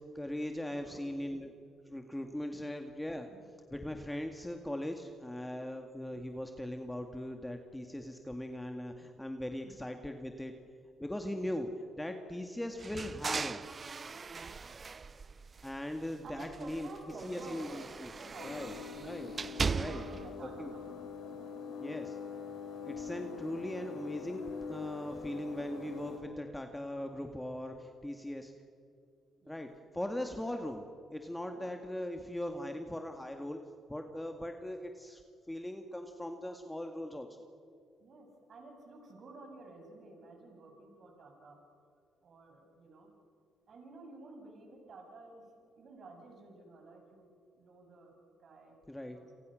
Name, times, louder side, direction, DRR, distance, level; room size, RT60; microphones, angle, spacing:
voice 1, 0.0-1.5 1.8-3.3 3.7-10.5 11.0-11.7 12.0-13.6 15.6-16.9 17.2-18.1 18.4-19.3 19.7-20.0 20.6-20.7 21.8-22.2 22.9-28.5 29.5-29.7 29.9-30.8 31.1-33.6 33.9-35.2 35.5-37.3 48.9-49.2, left 1 dB, 10° left, 4 dB, 2.1 m, -39 dB
voice 2, 0.7-1.2 2.5-2.7 3.3-3.4 9.6-9.7 11.2-11.4 12.3-12.4 14.3-14.5 14.9-15.1 16.2-18.8 19.6-21.1 29.4-29.6 30.3-30.4 31.5-31.7 38.0-41.6 42.2-43.1 43.7-47.3 47.6-48.1 48.4-48.8 49.1-49.3, right 2 dB, 55° right, 2 dB, 7.0 m, -51 dB
sound 1, 12.8-16.0 16.3-20.3, right 5 dB, 35° right, 0.6 m, -39 dB
sound 2, 18.4-26.2, left 6 dB, 85° left, 6.6 m, -44 dB
28.5 x 27.5 x 6.5 m, 2.4 s
cardioid pair, 90°, 0 cm